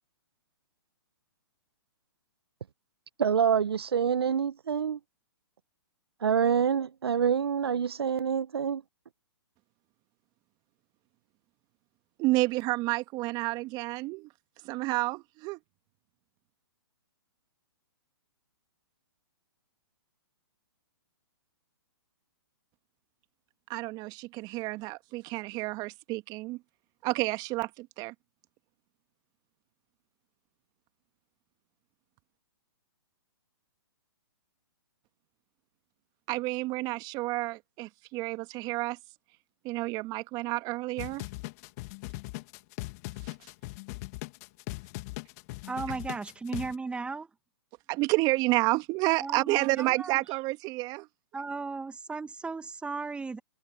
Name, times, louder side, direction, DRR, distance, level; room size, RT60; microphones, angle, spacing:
voice 1, 3.2-5.0 6.2-8.8, right 7 dB, 75° right, 1.0 m, -26 dB
voice 2, 12.2-14.3 14.6-15.6 23.7-26.6 27.0-28.1 36.3-39.0 39.6-41.2 43.2-43.3 47.9-51.1, right 21 dB, 30° right, 2.0 m, -30 dB
sound 1, 41.0-46.7, left 23 dB, 40° left, 2.0 m, -39 dB
voice 3, 45.7-47.3 49.2-50.2 51.3-53.4, right 4 dB, 10° right, 1.9 m, -36 dB
hypercardioid pair, 130°, 13 cm